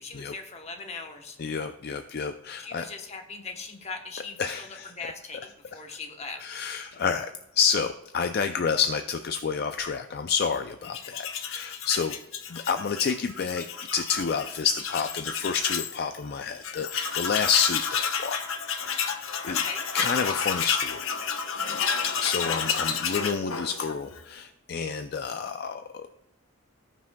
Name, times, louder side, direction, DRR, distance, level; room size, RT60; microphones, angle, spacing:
voice 1, 0.0-1.4 2.6-6.5 19.4-19.9 22.2-22.3, left 4 dB, 30° left, 4 dB, 1.0 m, -40 dB
voice 2, 1.4-2.8 4.4-4.9 6.4-12.1 12.5-13.7 13.9-18.4 19.1-19.6 19.9-21.0 22.1-26.1, left 6 dB, 50° left, 8 dB, 0.4 m, -29 dB
Tools, 10.8-16.0 16.3-16.4 16.6-24.2, left 6 dB, 80° left, 0.9 m, -30 dB
18.0 x 6.0 x 2.3 m, 0.90 s
head